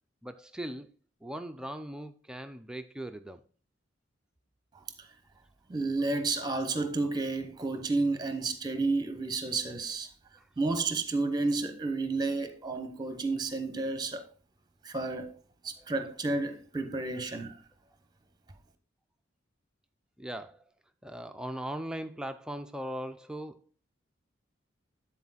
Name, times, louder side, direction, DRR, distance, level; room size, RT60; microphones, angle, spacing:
voice 1, 0.2-0.9 1.2-3.4 10.4-10.5 15.8-15.9 20.2-20.6 21.0-23.6, right 1 dB, 5° right, 0.3 m, -39 dB
voice 2, 5.7-10.1 10.6-14.3 14.8-15.3 15.6-17.5, right 3 dB, 20° right, 0.7 m, -31 dB
9.6 x 4.3 x 4.0 m
head